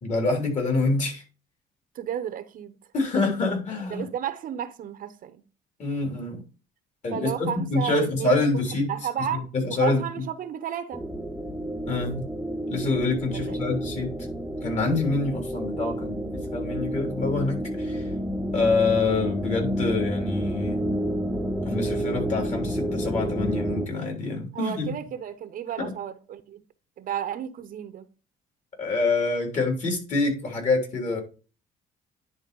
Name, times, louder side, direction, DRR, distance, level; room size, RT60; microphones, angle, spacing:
voice 1, 0.0-1.2 2.9-4.0 5.8-6.4 7.0-7.3 7.7-8.9 9.5-10.0 11.9-12.3 12.7-14.3 14.6-18.1 18.5-20.9 21.6-24.9 25.8-25.9 28.8-31.2, left 3 dB, 45° left, 3.5 m, -26 dB
voice 2, 1.9-2.8 3.9-5.4 7.1-8.4 8.9-11.0 13.3-13.6 24.5-26.6 27.0-28.1, right 9 dB, 55° right, 0.8 m, -32 dB
sound 1, 10.9-23.9, equal, ahead, 0.7 m, -30 dB
10.0 x 4.0 x 5.3 m
cardioid pair, 110°, 17 cm